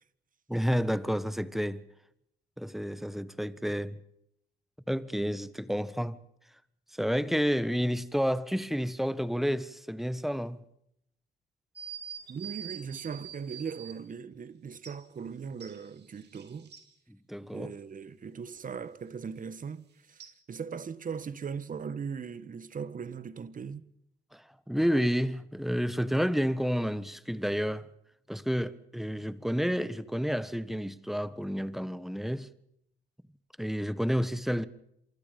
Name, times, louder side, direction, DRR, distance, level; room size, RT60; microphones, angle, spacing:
voice 1, 0.5-1.8 2.6-4.0 4.9-6.2 7.0-10.6 17.1-17.7 24.3-27.9 28.3-32.5 33.6-34.6, equal, ahead, 1.5 m, -30 dB
sound 1, 11.8-14.0 14.8-15.0 15.6-16.8 20.2-20.3, right 8 dB, 60° right, 4.8 m, -44 dB
voice 2, 12.3-16.7 17.5-23.9, right 6 dB, 40° right, 1.7 m, -39 dB
27.0 x 24.5 x 5.5 m
cardioid pair, 90°, 20 cm